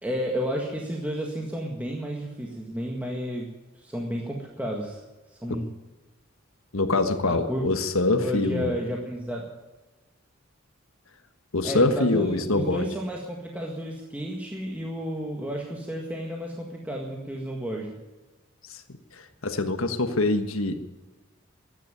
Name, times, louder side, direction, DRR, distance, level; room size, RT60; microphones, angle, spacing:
voice 1, 0.0-5.0 5.3-5.7 7.2-7.7 8.2-9.5 11.6-18.0, equal, 5° right, -1 dB, 1.8 m, -32 dB
voice 2, 6.7-8.7 11.5-12.9 18.7-18.8 19.1-20.9, left 2 dB, 90° left, 8 dB, 1.4 m, -25 dB
15.0 x 10.0 x 9.3 m, 1.1 s
head